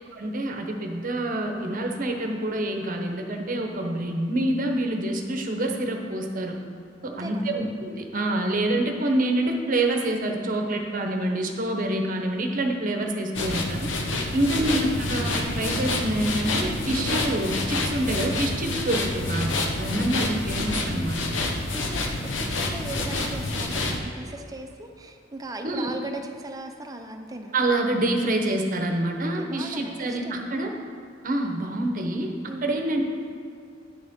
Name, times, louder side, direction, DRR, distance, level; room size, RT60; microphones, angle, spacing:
voice 1, 0.1-6.6 7.0-13.9 14.3-21.2 25.6-25.9 27.5-30.7 31.2-32.3 32.6-33.2, right 1 dB, 45° right, 3 dB, 0.8 m, -26 dB
voice 2, 7.0-7.6 14.2-14.5 21.7-27.7 29.4-30.5 32.5-32.7, right 2 dB, 20° right, 4 dB, 0.6 m, -38 dB
sound 1, 13.3-24.0, left 2 dB, 90° left, 0.9 m, -28 dB
Water / Sink (filling or washing), 15.0-16.8, equal, 50° left, 1.6 m, -41 dB
9.7 x 6.7 x 3.6 m, 2.3 s
head